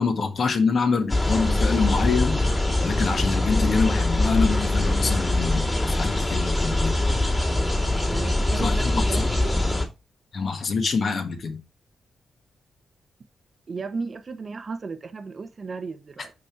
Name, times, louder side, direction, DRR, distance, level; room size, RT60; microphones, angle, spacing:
voice 1, 0.0-2.4 2.8-7.0 8.6-9.2 10.3-11.6, left 5 dB, 55° left, 1.6 m, -25 dB
sound 1, 1.1-9.9, left 1 dB, 25° left, 2.2 m, -23 dB
voice 2, 8.1-9.6 13.7-16.3, right 4 dB, 45° right, 0.8 m, -34 dB
5.3 x 5.2 x 4.5 m
cardioid pair, 80°, 0 cm